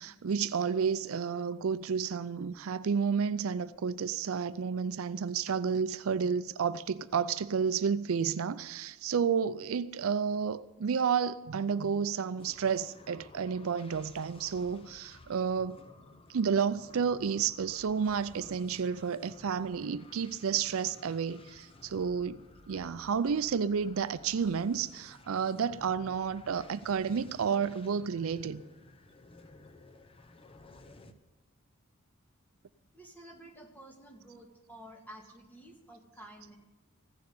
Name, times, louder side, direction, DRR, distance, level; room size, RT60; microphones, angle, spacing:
voice 1, 0.0-15.8 16.3-22.4 22.7-28.6, right 6 dB, 70° right, 0.4 m, -31 dB
sound 1, 12.4-31.1, left 2 dB, 25° left, 0.8 m, -55 dB
voice 2, 32.9-36.6, right 1 dB, 10° left, 1.9 m, -51 dB
15.5 x 6.9 x 9.5 m
head